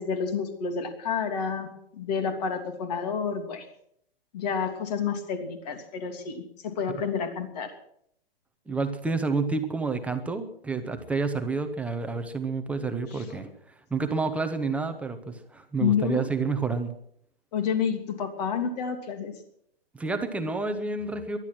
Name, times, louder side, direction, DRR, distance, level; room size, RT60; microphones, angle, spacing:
voice 1, 0.0-3.7 4.3-7.7 13.1-13.4 15.8-16.3 17.5-19.3, left 6 dB, 40° left, 7 dB, 3.1 m, -29 dB
voice 2, 8.7-13.5 13.9-16.9 19.9-21.4, right 4 dB, 5° right, 7 dB, 0.9 m, -29 dB
19.0 x 12.0 x 6.2 m, 0.69 s
hypercardioid pair, 150°, 30 cm